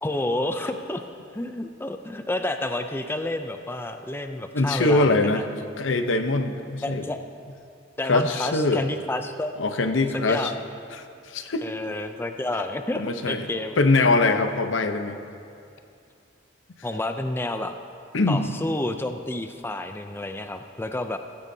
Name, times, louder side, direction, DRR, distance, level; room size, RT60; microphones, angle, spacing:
voice 1, 0.0-1.0 1.3-5.4 6.8-7.2 8.0-9.5 10.1-10.5 11.6-13.7 16.8-17.7 18.3-21.2, left 1 dB, 10° left, 7 dB, 0.4 m, -30 dB
voice 2, 4.5-5.4 5.8-7.0 8.1-8.8 9.6-10.5 10.9-11.0 11.3-11.7 12.9-13.5 13.8-15.2 18.1-18.6, left 2 dB, 75° left, 8 dB, 0.8 m, -22 dB
15.5 x 15.5 x 2.8 m, 2.5 s
head